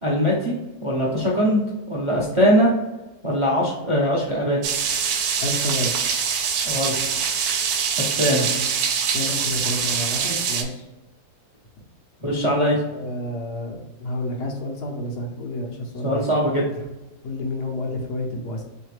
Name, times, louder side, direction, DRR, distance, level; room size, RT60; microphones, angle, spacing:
voice 1, 0.0-0.5 0.8-2.7 3.2-4.7 6.7-6.9 8.0-8.5 12.2-12.8 16.0-16.8, equal, 35° right, -4 dB, 0.4 m, -21 dB
sound 1, 4.6-10.6, right 6 dB, 75° right, 1.1 m, -24 dB
voice 2, 5.4-5.9 9.1-10.9 12.3-12.5 12.9-16.2 17.2-18.6, left 1 dB, 85° left, 0 dB, 1.5 m, -29 dB
3.6 x 3.3 x 3.2 m, 1.0 s
omnidirectional pair, 1.7 m